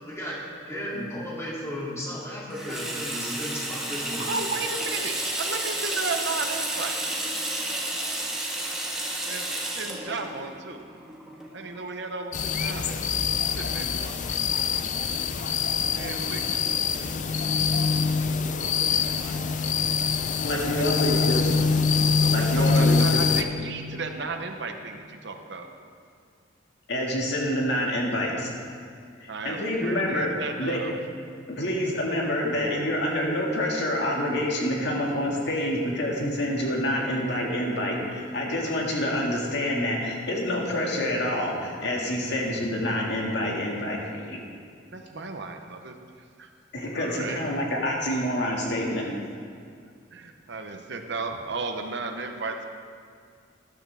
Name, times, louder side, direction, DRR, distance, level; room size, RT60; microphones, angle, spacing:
voice 1, 0.1-0.4 0.7-4.3, equal, 15° left, -6 dB, 2.6 m, -34 dB
Water tap faucet / Sink (filling or washing), 2.5-11.8, right 1 dB, 5° right, 1.5 m, -31 dB
voice 2, 4.2-7.0 9.3-10.8 11.5-13.0 13.3-14.2 16.0-16.6 17.0-17.4 18.3-19.4 20.5-21.2 22.2-25.9 29.3-30.9 44.9-45.9 46.4-46.5 46.9-47.4 50.1-52.7, right 4 dB, 65° right, 5 dB, 0.9 m, -35 dB
sound 1, 12.3-23.4, left 5 dB, 40° left, 0.5 m, -24 dB
voice 3, 20.4-21.5 22.3-23.3 26.9-28.5 29.2-30.3 30.6-30.8 31.5-44.4 46.7-49.1, left 1 dB, 65° left, -2 dB, 2.0 m, -27 dB
13.5 x 11.5 x 3.5 m, 2.2 s
head